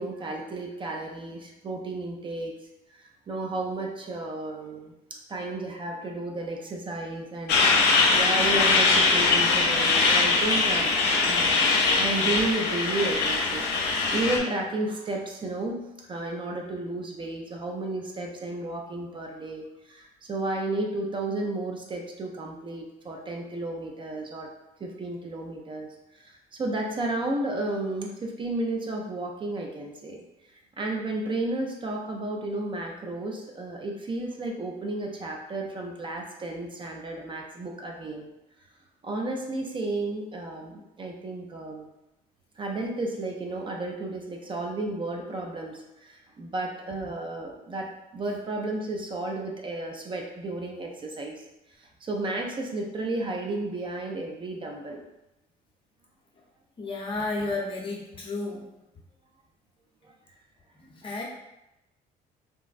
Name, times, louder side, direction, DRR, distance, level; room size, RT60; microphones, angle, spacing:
voice 1, 0.0-2.6 2.9-24.5 24.8-30.2 30.8-38.3 39.0-41.9 42.6-51.3 51.8-55.0 60.8-60.9, right 2 dB, 30° right, 1 dB, 0.4 m, -33 dB
Truck, 7.5-14.4, left 3 dB, 80° left, 0.5 m, -22 dB
voice 2, 56.8-58.6 61.0-61.2, left 3 dB, 30° left, -2 dB, 0.7 m, -32 dB
3.3 x 2.0 x 2.4 m, 0.91 s
cardioid pair, 110°, 17 cm